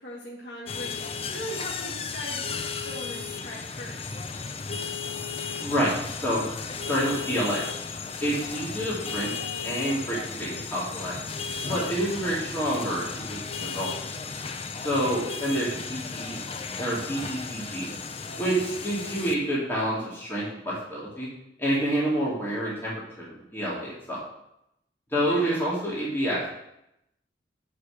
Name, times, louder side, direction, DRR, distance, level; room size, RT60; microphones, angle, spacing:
voice 1, 0.0-4.1 25.2-25.5, equal, 70° left, -5 dB, 1.9 m, -40 dB
sound 1, 0.7-19.3, left 5 dB, 30° left, 0.5 m, -35 dB
voice 2, 5.6-6.5 6.8-7.6 8.2-9.3 9.6-11.1 11.7-14.0 14.8-16.4 16.8-17.9 18.4-21.3 21.6-24.2 25.1-26.4, right 1 dB, 10° left, -7 dB, 2.2 m, -28 dB
8.2 x 5.0 x 5.8 m, 0.81 s
head